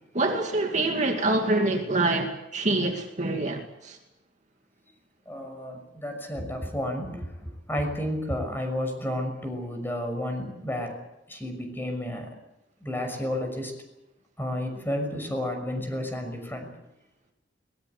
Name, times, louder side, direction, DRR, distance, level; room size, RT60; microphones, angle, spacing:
voice 1, 0.1-4.0, right 2 dB, 40° right, 2.4 m, -26 dB
voice 2, 5.3-7.3 7.7-10.9 11.3-12.3 12.8-13.7 14.4-16.7, left 1 dB, 10° left, 6.2 m, -31 dB
22.0 x 20.5 x 8.3 m
head